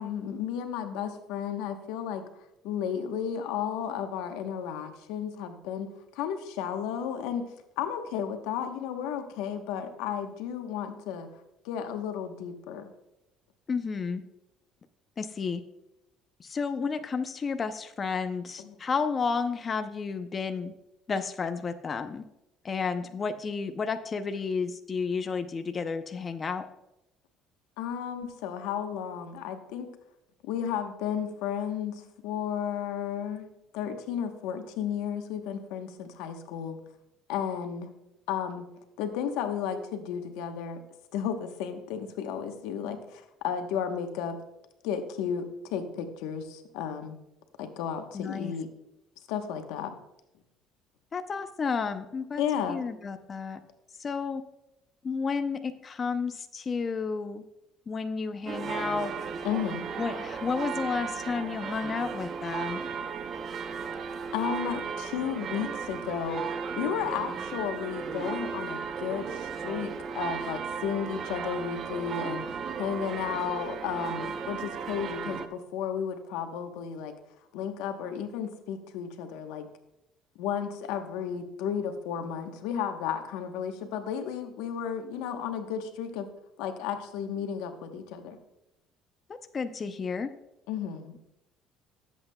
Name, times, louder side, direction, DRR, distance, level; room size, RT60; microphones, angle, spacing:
voice 1, 0.0-2.2 2.6-7.4 7.8-11.3 11.6-12.9 18.6-18.8 27.8-29.9 30.4-33.5 33.7-36.8 37.3-37.9 38.3-38.7 39.0-40.8 41.1-44.4 44.8-47.2 47.6-48.7 49.3-49.9 52.4-52.8 59.4-59.8 64.3-72.4 72.8-77.1 77.5-79.7 80.4-86.3 86.6-88.4 90.7-91.1, left 8 dB, 90° left, 6 dB, 1.0 m, -33 dB
voice 2, 13.7-14.2 15.2-15.6 16.4-20.7 21.1-22.2 22.6-26.7 48.1-48.5 51.1-52.4 52.7-53.6 54.0-54.4 55.0-57.4 57.9-59.1 60.0-62.8 89.5-90.3, left 5 dB, 30° left, 8 dB, 0.6 m, -31 dB
sound 1, 58.5-75.5, right 6 dB, 45° right, 0.7 m, -35 dB
16.5 x 8.0 x 2.2 m, 0.88 s
cardioid pair, 120°, 0 cm